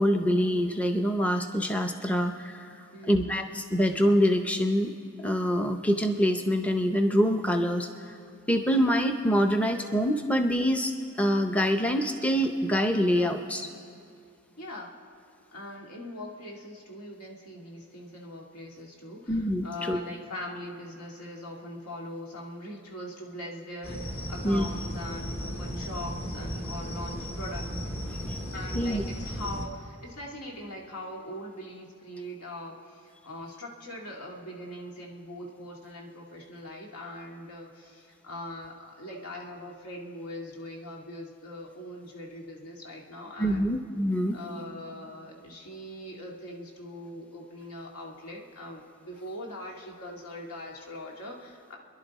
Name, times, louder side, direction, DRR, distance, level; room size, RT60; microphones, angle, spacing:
voice 1, 0.0-2.7 3.1-4.9 5.2-8.1 8.5-13.7 19.3-20.0 24.4-24.6 28.7-29.0 43.4-44.4, equal, 5° left, 5 dB, 0.6 m, -25 dB
voice 2, 2.9-3.3 14.6-15.0 15.5-27.7 28.5-43.7 44.3-51.8, left 1 dB, 80° left, -1 dB, 2.1 m, -41 dB
sound 1, 23.8-29.7, equal, 45° left, 1.8 m, -35 dB
28.5 x 11.0 x 4.1 m, 2.4 s
head